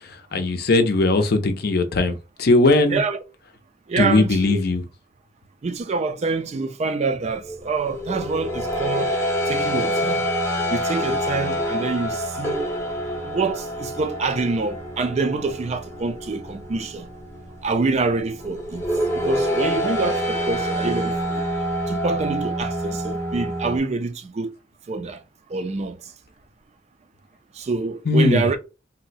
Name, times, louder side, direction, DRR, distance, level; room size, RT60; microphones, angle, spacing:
voice 1, 0.0-3.0 4.0-4.8 28.0-28.6, left 2 dB, 55° left, 0.5 m, -19 dB
voice 2, 3.9-4.6 5.6-9.2 9.5-10.2 10.7-12.7 13.2-17.1 17.6-18.9 19.1-21.5 21.9-24.5 24.9-25.2 25.5-26.0 27.6-28.6, right 4 dB, 35° right, 0.3 m, -26 dB
sound 1, 7.4-23.8, equal, 15° left, 0.7 m, -27 dB
2.6 x 2.0 x 3.9 m
head